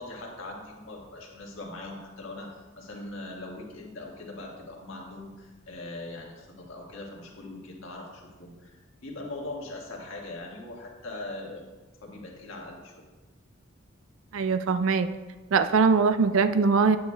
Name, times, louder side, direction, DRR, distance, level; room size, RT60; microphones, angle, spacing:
voice 1, 0.0-11.7 12.0-13.1, left 2 dB, 75° left, -2 dB, 1.5 m, -41 dB
voice 2, 14.3-15.1 15.5-17.0, right 5 dB, 85° right, 10 dB, 0.4 m, -21 dB
9.3 x 7.8 x 2.2 m, 1.3 s
head